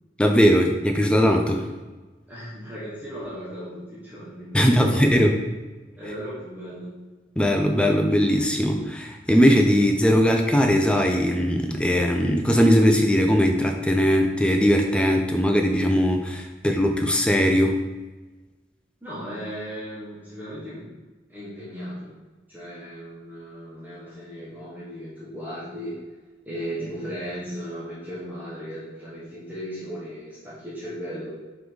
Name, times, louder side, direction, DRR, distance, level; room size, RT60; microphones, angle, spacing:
voice 1, 0.2-1.6 4.5-5.4 7.4-17.8, equal, 5° left, 3 dB, 0.5 m, -20 dB
voice 2, 2.3-5.1 5.9-7.0 19.0-20.9 21.3-22.2 22.5-25.9 26.4-31.4, equal, 10° right, -9 dB, 1.3 m, -36 dB
5.0 x 4.6 x 4.0 m, 1.2 s
head